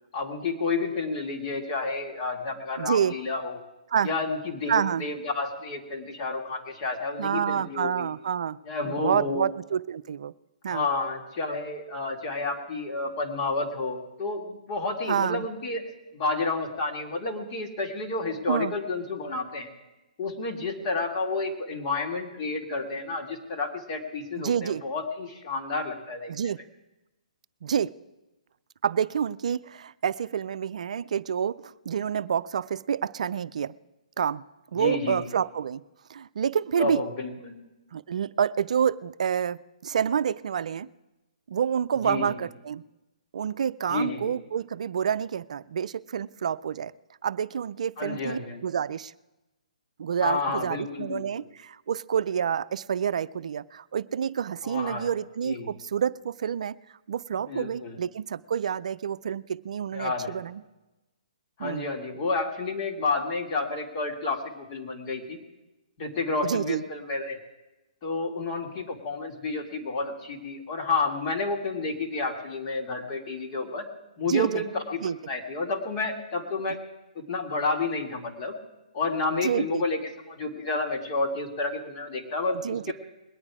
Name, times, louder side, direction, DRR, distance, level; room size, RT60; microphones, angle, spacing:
voice 1, 0.1-3.6 4.0-8.1 8.6-9.5 10.7-15.8 16.1-19.7 20.2-26.3 34.7-35.3 36.8-37.6 42.0-42.4 43.9-44.4 48.0-48.6 50.2-51.5 54.6-55.1 55.4-55.7 57.5-58.0 59.9-60.4 61.6-65.4 66.0-67.4 68.0-73.9 74.2-75.0 75.3-76.8 77.1-78.6 78.9-82.9, left 3 dB, 40° left, 2 dB, 2.4 m, -30 dB
voice 2, 2.8-3.1 3.9-4.1 4.7-5.1 7.2-8.6 8.9-10.3 10.6-10.9 15.1-15.5 18.5-18.7 24.4-24.8 26.3-26.6 27.6-27.9 28.8-33.7 34.2-34.4 34.7-35.8 36.1-37.0 37.9-40.9 41.5-42.8 43.3-46.9 47.2-49.1 50.0-56.8 57.1-60.6 61.6-61.9 66.4-66.8 74.2-74.6 75.0-75.2 79.4-79.8 82.5-82.9, right 8 dB, 65° right, 16 dB, 0.4 m, -28 dB
21.0 x 8.9 x 4.9 m, 1.0 s
hypercardioid pair, 145°, 4 cm